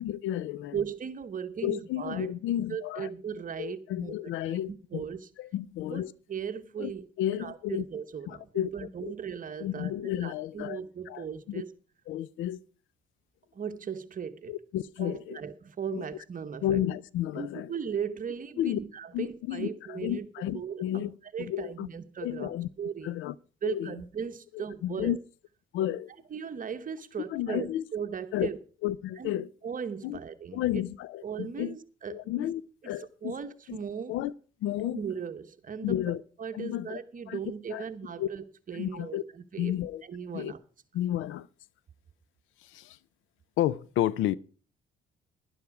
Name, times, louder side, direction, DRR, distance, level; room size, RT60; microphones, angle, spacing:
voice 1, 0.0-0.8 1.6-3.1 3.6-5.0 5.4-6.1 6.8-6.9 7.2-7.8 8.3-9.1 9.6-10.8 11.1-11.6 12.1-12.6 14.5-15.4 15.9-16.1 16.6-17.7 18.6-18.8 19.1-21.9 22.2-22.7 23.0-23.3 23.6-23.9 24.5-25.2 25.7-26.1 27.3-27.8 28.3-28.5 28.8-29.5 30.0-30.2 30.5-31.8 32.1-33.3 33.7-33.8 34.1-34.3 34.6-35.0 35.8-36.2 36.5-37.0 37.3-37.4 37.7-37.9 38.2-38.3 38.7-39.2 39.6-40.0 40.3-40.5 40.9-41.5 42.6-43.0 43.6-44.4, left 12 dB, 85° left, 0.5 m, -32 dB
voice 2, 0.7-2.3 2.7-4.1 4.5-5.3 5.9-7.0 7.4-11.7 13.5-14.5 15.0-16.8 17.3-20.3 20.5-21.0 21.3-22.5 22.8-23.2 23.6-25.2 26.3-28.6 29.2-29.3 29.6-30.8 31.2-32.5 32.8-34.2 34.8-36.0 36.4-39.8 40.0-40.6, right 7 dB, 40° right, 1.1 m, -37 dB
11.5 x 11.0 x 4.8 m
cardioid pair, 90°, 20 cm